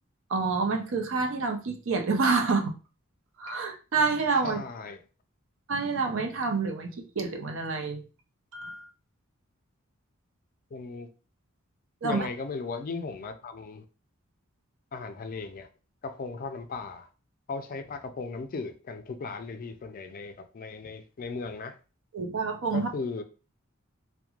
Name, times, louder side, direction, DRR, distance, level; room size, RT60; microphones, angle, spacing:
voice 1, 0.3-2.8 3.4-4.6 5.7-8.0 8.5-8.9 12.0-12.3 22.1-22.9, right 4 dB, 65° right, 0.5 m, -28 dB
voice 2, 4.4-5.0 10.7-11.1 12.0-13.8 14.9-15.7 16.0-17.1 17.5-21.8 22.7-23.2, left 4 dB, 45° left, 0.4 m, -37 dB
3.0 x 2.1 x 2.3 m
head